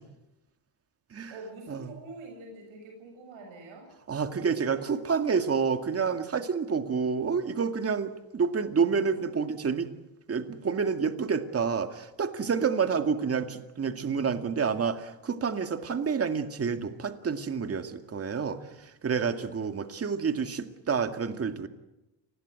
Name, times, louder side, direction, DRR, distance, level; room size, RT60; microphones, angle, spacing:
voice 1, 1.3-3.9 4.7-4.8, right 2 dB, 80° right, 2 dB, 7.5 m, -45 dB
voice 2, 4.1-9.9 10.3-21.7, right 6 dB, 30° right, 8 dB, 2.1 m, -29 dB
29.0 x 20.5 x 7.8 m, 0.93 s
cardioid pair, 125°, 46 cm